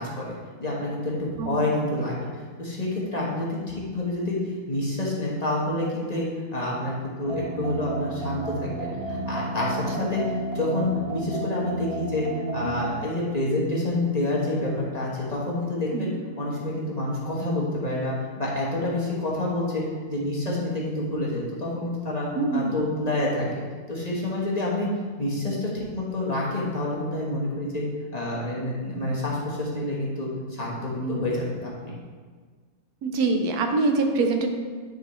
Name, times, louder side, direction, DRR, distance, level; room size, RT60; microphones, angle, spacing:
voice 1, 0.0-2.3 2.6-4.4 4.7-12.3 12.5-16.1 16.4-19.8 20.1-22.3 22.5-23.5 23.9-24.9 25.2-27.8 28.1-31.9, left 1 dB, 30° left, -5 dB, 1.1 m, -28 dB
sound 1, 7.2-12.9, right 2 dB, 40° right, 1.9 m, -32 dB
voice 2, 22.3-22.8 31.0-31.2 33.0-34.5, right 3 dB, 75° right, 4 dB, 1.2 m, -25 dB
10.0 x 4.0 x 3.1 m, 1.5 s
omnidirectional pair, 1.6 m